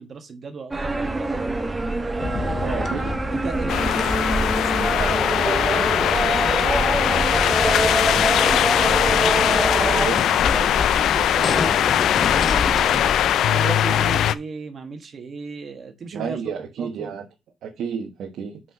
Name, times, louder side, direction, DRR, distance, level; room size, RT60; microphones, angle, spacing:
voice 1, 0.0-1.5 2.1-2.9 3.3-8.0 8.8-13.0 13.5-16.4 16.8-17.1, right 5 dB, 50° right, 1.5 m, -36 dB
sound 1, 0.7-10.1, right 2 dB, 20° right, 1.1 m, -25 dB
sound 2, 2.2-13.4, left 4 dB, 40° left, 0.9 m, -30 dB
voice 2, 2.6-3.1 9.9-10.2 16.1-17.3 17.6-18.6, right 7 dB, 75° right, 1.4 m, -31 dB
sound 3, 3.7-14.4, left 10 dB, 75° left, 0.4 m, -20 dB
5.9 x 4.8 x 5.8 m
cardioid pair, 90°, 0 cm